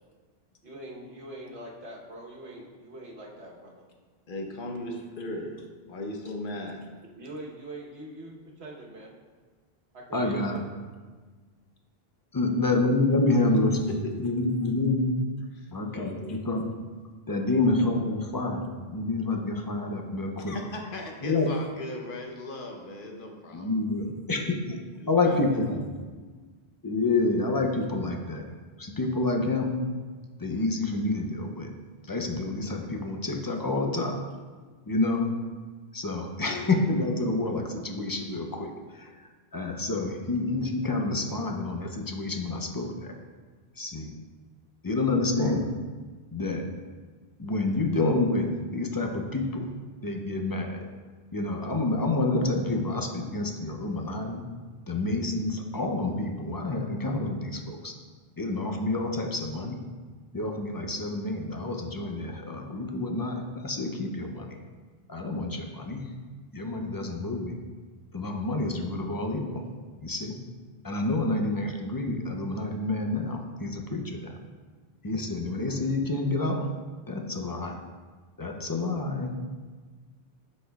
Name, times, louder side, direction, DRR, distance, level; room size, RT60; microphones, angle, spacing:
voice 1, 0.6-3.8 7.1-9.1 9.9-10.4, right 1 dB, 85° right, -3 dB, 1.4 m, -43 dB
voice 2, 4.3-5.5 5.9-6.8 14.0-14.1 15.5-16.4 20.5-23.7 25.0-25.4, left 1 dB, 60° left, 2 dB, 1.0 m, -37 dB
voice 3, 10.1-10.6 12.3-15.1 15.7-16.7 17.3-18.6 18.9-20.6 21.2-21.5 23.5-24.8 25.1-25.8 26.8-28.5 28.8-29.7 30.4-31.7 32.0-34.2 34.9-35.3 35.9-43.1 43.8-44.1 44.8-45.7 46.3-46.6 47.4-49.7 50.0-50.9 51.3-54.4 54.9-57.9 58.4-59.8 60.3-64.6 65.1-66.1 66.5-67.5 68.1-69.6 70.0-70.3 70.8-74.4 75.0-76.7 77.1-77.8 78.4-79.3, left 2 dB, 30° left, 3 dB, 0.4 m, -28 dB
11.0 x 4.1 x 2.3 m, 1.4 s
omnidirectional pair, 1.0 m